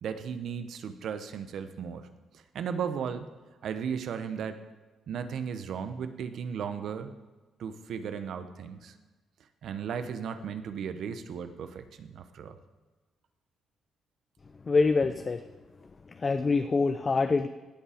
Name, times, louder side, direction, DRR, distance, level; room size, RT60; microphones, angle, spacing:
voice 1, 0.0-2.1 2.3-3.3 3.6-4.6 5.1-7.1 7.6-8.9 9.6-12.6, right 7 dB, 70° right, 10 dB, 0.9 m, -35 dB
voice 2, 14.7-15.4 16.2-17.5, left 4 dB, 35° left, 9 dB, 0.5 m, -25 dB
17.0 x 5.6 x 5.0 m, 1.3 s
cardioid pair, 90°, 0 cm